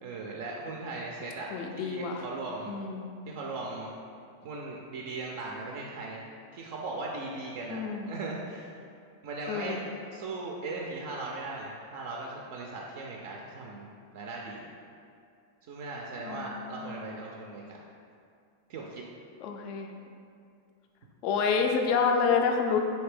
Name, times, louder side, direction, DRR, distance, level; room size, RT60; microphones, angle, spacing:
voice 1, 0.0-1.5 1.8-2.7 3.3-3.9 4.4-6.2 6.5-8.7 9.2-9.8 10.1-13.9 14.1-14.7 15.7-17.8 18.7-19.0, right 3 dB, 50° right, -2 dB, 0.3 m, -38 dB
voice 2, 1.5-2.2 2.7-3.1 7.7-8.1 9.5-9.8 16.2-17.1 19.4-19.9 21.2-22.8, left 5 dB, 45° left, 3 dB, 0.3 m, -28 dB
3.2 x 2.7 x 3.3 m, 2.3 s
figure-of-eight pair, 90°, 0 cm